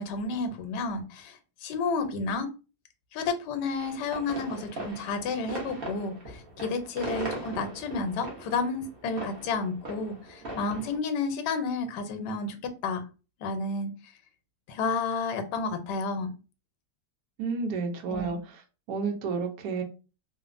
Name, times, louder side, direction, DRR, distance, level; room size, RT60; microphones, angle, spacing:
voice 1, 0.0-2.5 3.1-13.0 13.4-13.9 14.7-16.3 18.1-18.3, left 4 dB, 85° left, 7 dB, 1.2 m, -31 dB
sound 1, 3.8-11.0, right 2 dB, 45° right, 0.9 m, -39 dB
voice 2, 17.4-18.6 18.9-19.8, right 4 dB, 75° right, 4 dB, 1.1 m, -31 dB
3.1 x 2.1 x 2.4 m, 0.32 s
omnidirectional pair, 1.8 m